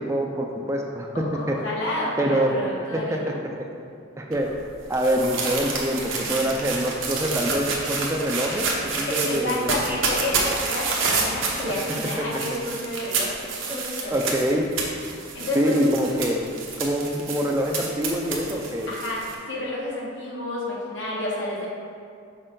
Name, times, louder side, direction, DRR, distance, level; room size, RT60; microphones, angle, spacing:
voice 1, 0.0-1.1 1.5-1.6 2.2-2.5 2.9-3.3 4.2-4.5 4.9-9.9 12.2-12.3 13.7-14.7 15.6-16.4 16.8-18.9, right 1 dB, 15° right, 1 dB, 0.4 m, -25 dB
voice 2, 1.1-3.4 9.1-14.1 15.3-15.9 18.9-21.7, left 1 dB, 70° left, -5 dB, 1.6 m, -30 dB
sound 1, 4.3-19.3, right 4 dB, 90° right, 1.1 m, -29 dB
6.5 x 5.0 x 3.8 m, 2.2 s
head